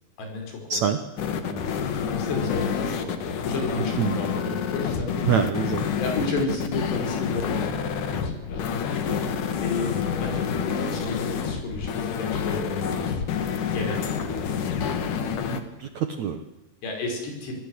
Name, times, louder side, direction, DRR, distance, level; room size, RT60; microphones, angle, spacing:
voice 1, 0.2-0.8 1.4-1.7 2.1-5.3 6.0-8.8 9.6-13.3 13.7-14.3 15.2-15.5 16.8-17.6, left 3 dB, 80° left, 3 dB, 7.4 m, -33 dB
sound 1, 1.2-15.6, left 7 dB, 55° left, 2.8 m, -28 dB
voice 2, 5.2-5.9 9.1-9.2 15.5-16.4, right 8 dB, 70° right, 8 dB, 1.8 m, -26 dB
26.5 x 17.5 x 8.0 m, 1.0 s
omnidirectional pair, 4.8 m